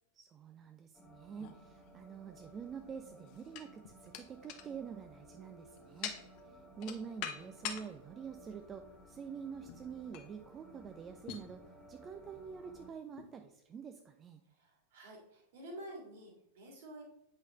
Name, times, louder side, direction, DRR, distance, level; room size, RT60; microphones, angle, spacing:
voice 1, 0.1-6.2 6.4-14.4, right 6 dB, 25° right, 6 dB, 0.4 m, -47 dB
sound 1, 0.9-12.9, equal, ahead, 1.7 m, -58 dB
sound 2, 1.4-2.4 3.1-7.9 8.4-8.6 9.7-9.9 10.1-10.4 11.3-11.5 12.3-12.4 13.2-13.3, left 9 dB, 40° left, 0.8 m, -45 dB
voice 2, 6.4-6.7 14.5-17.0, right 1 dB, 55° right, 0 dB, 2.1 m, -50 dB
8.2 x 5.3 x 3.0 m, 0.85 s
figure-of-eight pair, 90°, 0 cm